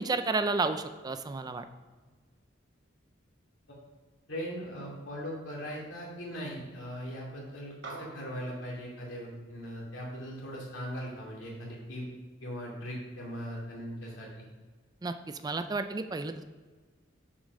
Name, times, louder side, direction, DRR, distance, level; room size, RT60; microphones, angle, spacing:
voice 1, 0.0-1.6 15.0-16.4, right 3 dB, 20° right, 9 dB, 0.3 m, -31 dB
voice 2, 4.3-12.1 12.4-14.5, equal, 80° left, -3 dB, 2.6 m, -39 dB
sound 1, 7.8-12.5, right 3 dB, 60° right, 1.1 m, -50 dB
7.0 x 5.3 x 5.4 m, 1.4 s
head